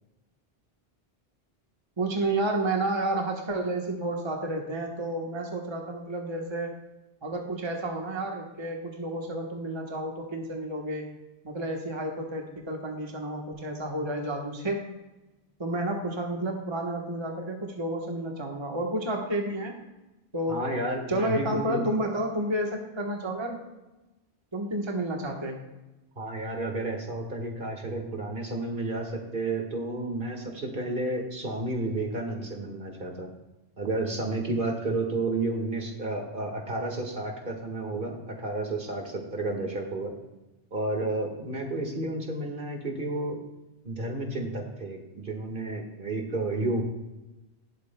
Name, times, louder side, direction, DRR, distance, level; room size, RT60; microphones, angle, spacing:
voice 1, 2.0-6.7 7.2-11.1 11.4-14.9 15.6-19.8 20.3-20.6 21.1-23.6 24.5-25.6, right 1 dB, 30° right, 1 dB, 1.1 m, -31 dB
voice 2, 20.5-21.8 26.2-33.3 33.8-40.1 40.7-43.4 43.8-46.8, right 2 dB, 55° right, 2 dB, 1.8 m, -31 dB
18.5 x 8.0 x 2.2 m, 1.0 s
omnidirectional pair, 1.0 m